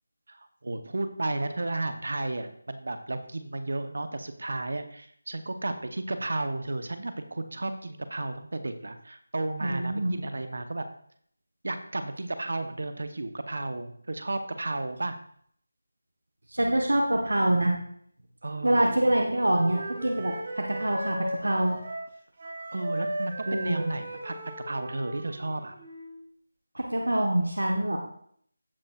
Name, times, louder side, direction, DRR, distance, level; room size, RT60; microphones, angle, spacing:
voice 1, 0.3-10.8 11.6-15.2 18.4-18.9 22.7-24.4 24.6-25.8, right 2 dB, 60° right, 9 dB, 0.9 m, -33 dB
voice 2, 9.6-10.1 16.5-17.7 18.6-21.8 23.5-23.9 26.7-28.0, right 1 dB, 80° right, 1 dB, 1.2 m, -25 dB
Wind instrument woodwind instrument, 18.6-26.2, right 1 dB, 45° right, 2.7 m, -37 dB
15.5 x 5.3 x 2.4 m, 0.63 s
figure-of-eight pair, 160°, 0 cm